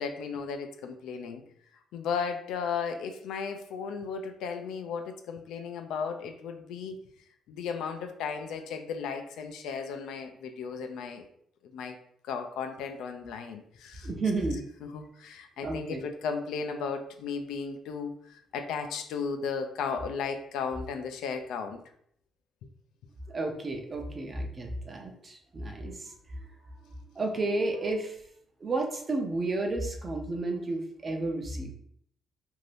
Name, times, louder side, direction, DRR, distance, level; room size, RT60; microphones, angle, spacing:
voice 1, 0.0-1.4 1.9-7.0 7.5-11.3 11.7-12.0 12.2-14.1 14.8-21.8, left 6 dB, 85° left, 6 dB, 0.4 m, -35 dB
voice 2, 14.0-14.6 15.6-16.0 23.3-26.5 26.8-28.2 28.6-31.7, right 2 dB, 35° right, 2 dB, 0.6 m, -32 dB
2.7 x 2.5 x 3.2 m, 0.69 s
cardioid pair, 90°, 0 cm